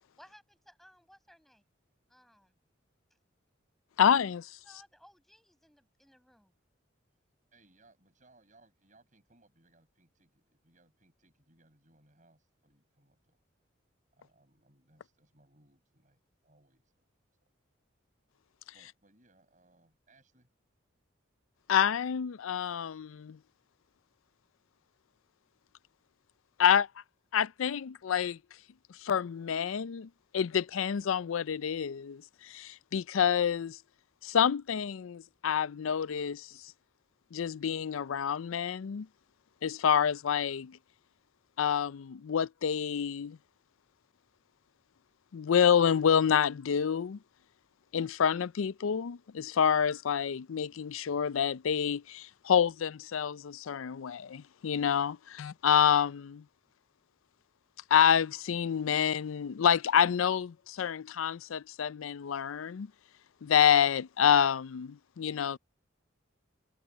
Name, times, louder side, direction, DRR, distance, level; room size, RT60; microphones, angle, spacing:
voice 1, 0.2-1.6 2.1-2.6 4.6-6.5, equal, ahead, 7.3 m, -60 dB
voice 2, 4.0-4.5 21.7-23.4 26.6-26.9 27.3-28.4 28.9-33.8 34.2-36.6 37.3-39.1 39.6-40.8 41.6-43.4 45.3-47.2 47.9-56.4 57.9-62.9 63.4-65.6, left 8 dB, 85° left, 0.4 m, -28 dB
voice 3, 7.5-13.4 14.1-17.1 17.4-17.5 18.7-20.5 21.8-21.9, right 2 dB, 40° right, 7.0 m, -66 dB
head